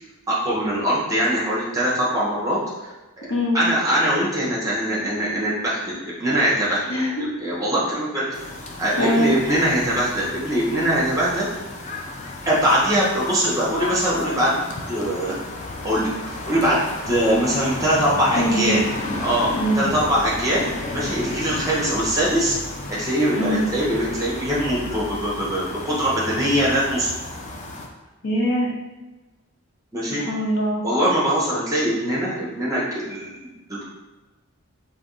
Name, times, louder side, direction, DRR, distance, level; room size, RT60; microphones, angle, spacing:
voice 1, 0.3-2.6 3.5-7.0 7.4-8.5 8.8-11.5 12.4-14.6 14.9-15.3 15.8-18.8 19.2-20.6 20.9-22.6 22.9-27.1 29.9-30.2 30.8-33.8, equal, 15° right, -6 dB, 0.9 m, -22 dB
voice 2, 3.3-3.6 6.9-7.1 9.0-9.3 18.4-18.8 19.5-19.9 23.3-23.6 28.2-28.7 30.2-30.8, equal, 75° left, -3 dB, 0.9 m, -22 dB
sound 1, 8.3-27.9, left 2 dB, 35° left, 0.4 m, -33 dB
3.4 x 2.7 x 3.9 m, 1.1 s
head